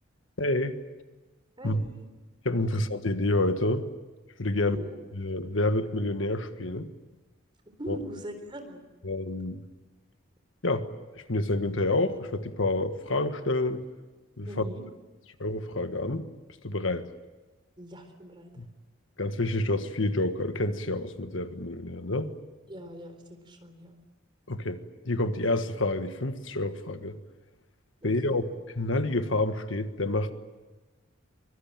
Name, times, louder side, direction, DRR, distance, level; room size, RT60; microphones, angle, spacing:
voice 1, 0.4-0.8 1.6-1.8 2.4-3.9 4.4-4.8 5.1-6.9 7.9-8.0 9.0-9.6 10.6-10.9 11.1-13.8 14.4-14.6 15.4-16.3 16.6-17.1 18.6-18.7 19.2-22.3 24.5-24.8 25.0-27.2 28.0-28.5 28.7-30.3, left 2 dB, 70° left, 9 dB, 1.6 m, -28 dB
voice 2, 1.6-2.1 4.6-5.0 7.8-8.8 14.5-14.8 17.8-18.5 22.7-24.0 28.0-28.4, equal, 25° right, 6 dB, 3.9 m, -42 dB
24.5 x 23.0 x 9.0 m, 1.2 s
head